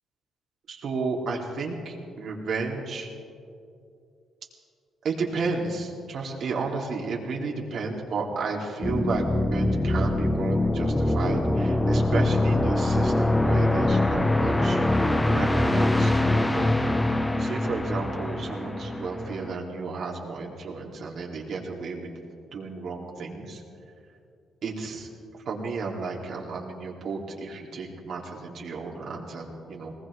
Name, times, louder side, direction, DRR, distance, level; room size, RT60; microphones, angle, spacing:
voice 1, 0.7-3.1 5.0-14.8 15.3-16.7 17.2-22.1 22.5-23.6 24.6-25.1 25.5-29.9, right 4 dB, 65° right, -1 dB, 2.5 m, -32 dB
sound 1, 8.8-19.6, left 1 dB, 10° left, 0.7 m, -23 dB
20.5 x 19.5 x 3.2 m, 2.5 s
cardioid pair, 90°, 0 cm